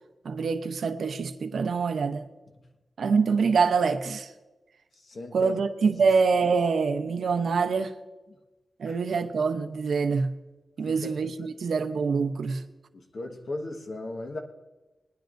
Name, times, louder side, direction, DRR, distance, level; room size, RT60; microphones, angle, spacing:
voice 1, 0.2-2.2 3.0-4.3 5.3-7.9 8.8-10.3 10.8-12.6, right 5 dB, 85° right, 0.7 m, -25 dB
voice 2, 5.0-5.6 5.8-6.1 8.9-9.0 10.8-11.1 12.9-14.4, left 2 dB, 55° left, 1.3 m, -37 dB
20.0 x 10.5 x 2.6 m
wide cardioid pair, 175°, 0 cm